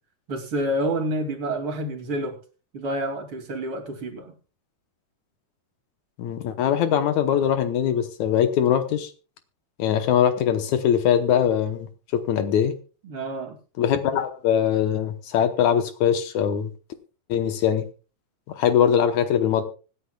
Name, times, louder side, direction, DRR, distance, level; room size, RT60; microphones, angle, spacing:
voice 1, 0.3-2.4 2.7-4.3 13.0-13.5, right 1 dB, 45° right, 2 dB, 3.1 m, -28 dB
voice 2, 6.2-9.1 9.8-12.8 13.8-16.7 17.3-17.8 18.6-19.6, left 9 dB, 70° left, 9 dB, 2.2 m, -22 dB
25.5 x 10.0 x 2.3 m, 0.35 s
omnidirectional pair, 3.8 m